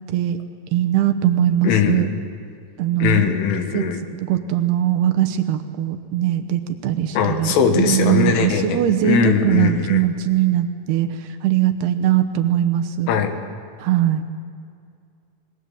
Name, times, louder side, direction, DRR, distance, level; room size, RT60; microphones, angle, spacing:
voice 1, 0.7-2.1 2.8-3.3 3.7-13.1 13.8-14.2, right 11 dB, 75° right, 7 dB, 2.5 m, -20 dB
voice 2, 1.6-2.1 3.0-4.0 7.2-10.0 13.1-13.3, left 7 dB, 80° left, 6 dB, 4.0 m, -20 dB
26.0 x 21.0 x 7.2 m, 2.3 s
omnidirectional pair, 5.6 m